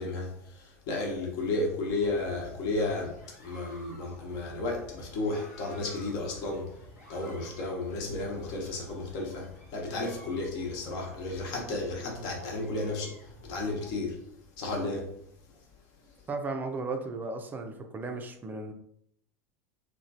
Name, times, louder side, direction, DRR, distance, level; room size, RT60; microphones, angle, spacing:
voice 1, 0.0-14.3 14.6-15.1 16.1-16.3, left 2 dB, 50° left, 1.0 m, -33 dB
sound 1, 1.8-13.9, equal, 85° left, 1.4 m, -52 dB
voice 2, 16.3-18.7, right 3 dB, 20° right, 0.5 m, -35 dB
3.0 x 2.3 x 2.6 m
figure-of-eight pair, 80°, 8 cm